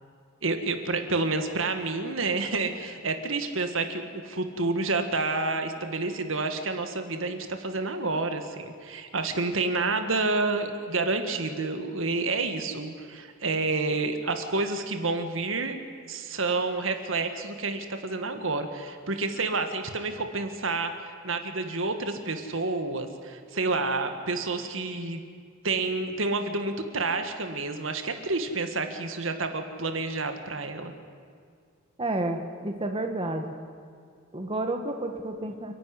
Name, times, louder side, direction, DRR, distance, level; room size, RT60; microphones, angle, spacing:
voice 1, 0.4-15.8 16.1-25.2 25.6-30.9, right 3 dB, 75° right, 7 dB, 1.8 m, -29 dB
voice 2, 32.0-33.5 34.3-35.7, right 2 dB, 25° right, 5 dB, 1.4 m, -30 dB
29.0 x 11.0 x 9.8 m, 2.1 s
head